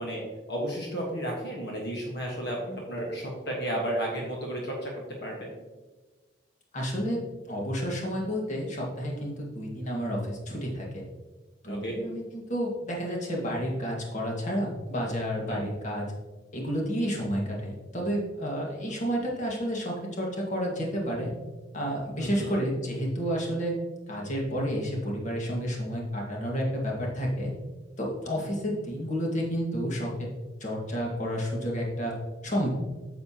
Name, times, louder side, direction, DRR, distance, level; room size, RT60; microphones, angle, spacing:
voice 1, 0.0-4.9 5.2-5.6 11.7-12.0 15.5-15.6 22.2-22.6, right 1 dB, 65° left, -1 dB, 1.4 m, -33 dB
voice 2, 6.7-11.0 11.6-16.1 16.5-21.3 21.7-23.7 24.1-27.5 28.0-30.3 30.6-32.1 32.4-32.7, equal, 45° left, -2 dB, 1.7 m, -30 dB
8.8 x 6.9 x 2.9 m, 1.2 s
head